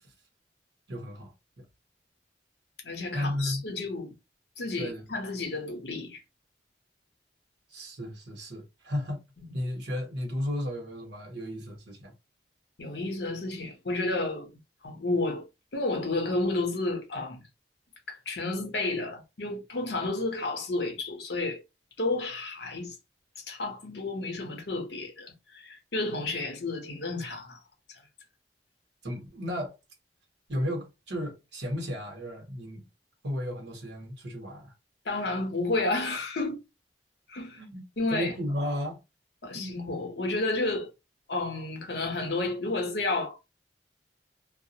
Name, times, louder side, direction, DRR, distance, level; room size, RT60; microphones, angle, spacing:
voice 1, 0.9-1.6 3.1-3.6 4.8-5.1 7.7-9.2 9.5-12.1 29.0-29.8 30.5-32.8 33.2-34.7 37.6-37.8 38.1-39.0 39.5-39.7, equal, 75° right, 1.1 m, -34 dB
voice 2, 2.8-4.1 4.6-6.2 12.8-14.6 14.8-15.5 15.7-17.4 18.1-21.6 22.0-23.0 23.4-27.6 27.9-28.0 35.0-36.6 37.3-37.6 38.0-38.3 39.4-40.9 41.3-43.6, left 2 dB, 70° left, 0.8 m, -31 dB
2.3 x 2.0 x 2.8 m
head